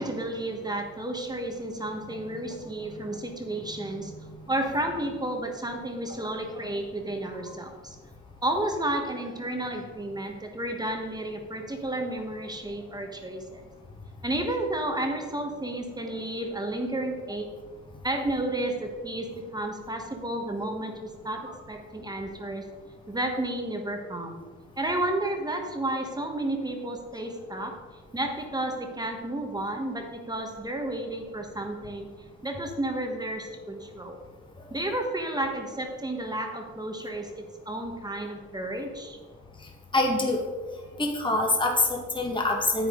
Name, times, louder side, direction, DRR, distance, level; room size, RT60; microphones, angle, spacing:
voice 1, 0.0-8.0 8.4-13.6 14.2-17.5 18.0-22.7 23.1-24.4 24.8-27.8 28.1-32.1 32.4-34.2 34.7-39.2, right 1 dB, 15° right, 3 dB, 1.4 m, -32 dB
voice 2, 39.9-40.4 41.0-42.9, left 2 dB, 15° left, 0 dB, 1.7 m, -25 dB
9.5 x 8.7 x 3.9 m, 1.4 s
cardioid pair, 90°, 30 cm